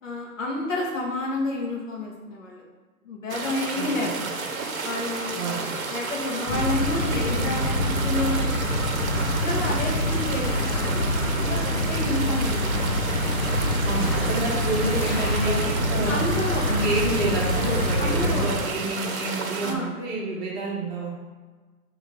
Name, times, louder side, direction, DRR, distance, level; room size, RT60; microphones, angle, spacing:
voice 1, 0.0-2.6 3.0-4.4 4.8-8.8 9.2-13.1 16.1-16.7 18.0-18.5 19.6-19.9, left 2 dB, 55° left, -1 dB, 1.6 m, -30 dB
sound 1, 3.3-19.7, right 4 dB, 65° right, 0.9 m, -32 dB
voice 2, 3.8-4.2 5.3-5.7 13.8-16.3 16.7-21.1, right 2 dB, 30° right, -4 dB, 1.5 m, -29 dB
sound 2, 6.5-18.5, left 1 dB, 40° left, 1.3 m, -25 dB
6.3 x 3.4 x 4.4 m, 1.4 s
figure-of-eight pair, 120°, 46 cm